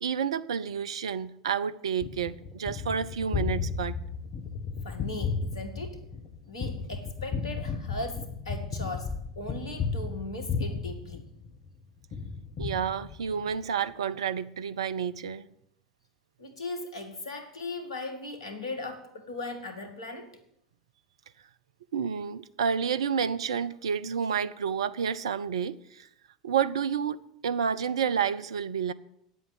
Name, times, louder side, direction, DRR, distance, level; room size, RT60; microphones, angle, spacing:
voice 1, 0.0-4.0 12.6-15.5 21.9-26.1 26.4-28.9, right 7 dB, 70° right, 0.6 m, -30 dB
Gunshot gunfire, 2.0-11.7 12.1-13.5, left 5 dB, 40° left, 1.3 m, -34 dB
voice 2, 4.8-6.0 6.5-11.2 16.4-20.3, left 2 dB, 75° left, 2.1 m, -38 dB
9.4 x 8.1 x 9.4 m
figure-of-eight pair, 75°, 3 cm